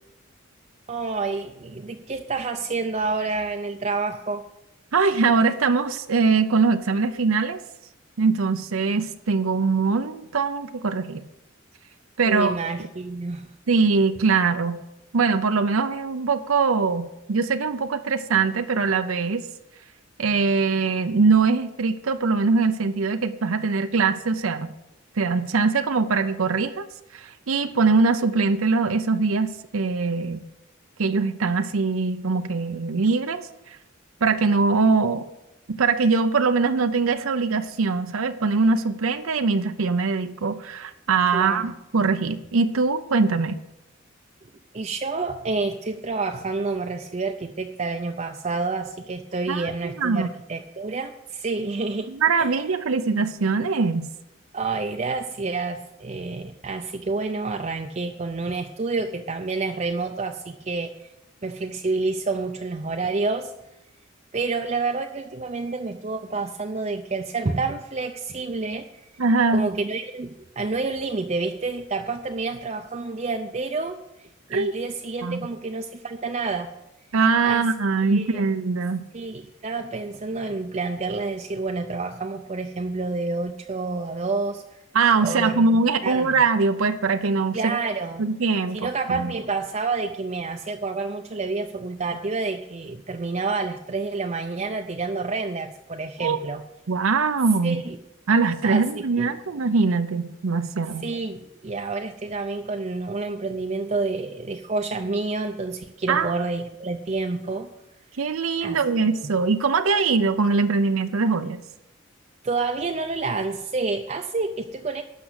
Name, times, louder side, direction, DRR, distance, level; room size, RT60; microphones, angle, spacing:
voice 1, 0.9-4.5 12.3-13.5 41.3-41.7 44.7-52.5 54.5-61.1 61.4-63.5 64.3-69.0 69.5-74.0 74.5-76.7 77.4-77.6 78.0-78.4 79.1-84.8 85.2-86.4 87.5-88.2 88.7-96.6 97.6-98.0 98.6-99.3 101.0-107.7 108.6-108.8 109.2-109.4 112.4-115.0, right 3 dB, 35° right, 4 dB, 0.5 m, -29 dB
voice 2, 4.9-7.6 8.2-11.2 12.2-12.6 13.7-14.8 15.1-19.5 20.2-24.7 25.2-26.9 27.1-30.4 31.0-33.8 34.2-35.3 35.7-43.6 49.5-50.3 52.1-54.1 69.2-69.7 74.5-74.7 75.2-75.4 77.1-79.0 84.9-87.8 88.2-89.3 96.2-96.4 96.9-97.8 98.3-101.1 106.1-106.3 108.2-111.6, right 4 dB, 85° right, 9 dB, 0.7 m, -22 dB
12.0 x 6.1 x 8.1 m, 0.91 s
head